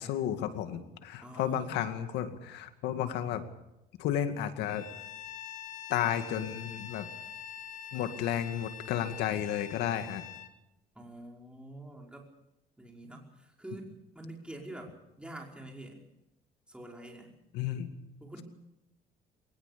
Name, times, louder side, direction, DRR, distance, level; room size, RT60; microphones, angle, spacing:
voice 1, 0.0-3.4 4.0-4.8 5.9-7.1 7.9-10.2 17.5-17.9, left 10 dB, 90° left, 8 dB, 2.2 m, -32 dB
voice 2, 1.2-1.8 10.9-12.3 12.8-16.0 16.7-17.3 18.2-18.4, right 1 dB, 5° right, 0 dB, 5.1 m, -46 dB
Bowed string instrument, 4.6-10.5, left 9 dB, 45° left, 2.0 m, -45 dB
21.5 x 19.5 x 6.9 m, 0.90 s
cardioid pair, 110°, 17 cm